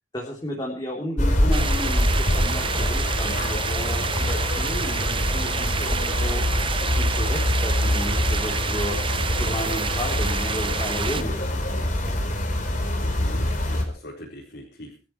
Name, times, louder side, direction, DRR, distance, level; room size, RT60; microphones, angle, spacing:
voice 1, 0.1-6.4 6.8-9.0 9.4-11.9, equal, 25° left, -1 dB, 3.4 m, -33 dB
sound 1, 1.2-13.8, left 1 dB, 45° left, 4.2 m, -24 dB
sound 2, 1.5-11.2, right 6 dB, 30° right, 0.8 m, -29 dB
voice 2, 13.0-15.0, equal, 65° left, -3 dB, 4.5 m, -42 dB
23.0 x 13.0 x 3.2 m, 0.32 s
head